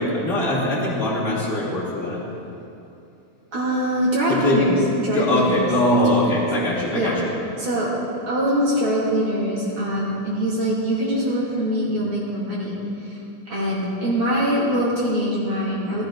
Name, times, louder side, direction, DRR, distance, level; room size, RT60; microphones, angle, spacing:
voice 1, 0.0-2.2 4.3-4.6 5.1-7.3, left 1 dB, 25° left, -6 dB, 2.6 m, -22 dB
voice 2, 3.5-5.5 5.9-6.0 6.9-7.2 7.6-7.9 8.3-12.7 13.0-13.2 13.5-16.0, equal, 40° right, -6 dB, 3.1 m, -23 dB
15.5 x 13.5 x 3.9 m, 2.7 s
omnidirectional pair, 3.6 m